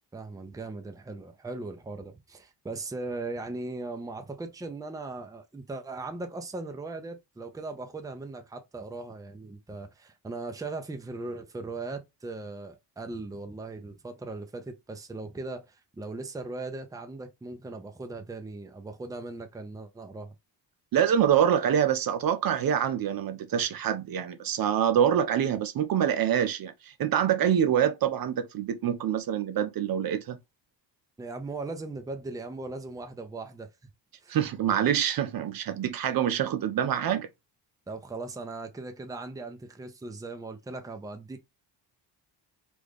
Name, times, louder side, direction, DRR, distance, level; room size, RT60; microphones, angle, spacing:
voice 1, 0.1-20.3 31.2-33.7 34.2-34.4 37.9-41.4, right 3 dB, 10° right, 0.6 m, -38 dB
voice 2, 20.9-30.4 34.3-37.3, right 9 dB, 55° right, 0.6 m, -25 dB
3.1 x 2.5 x 3.4 m
cardioid pair, 105°, 43 cm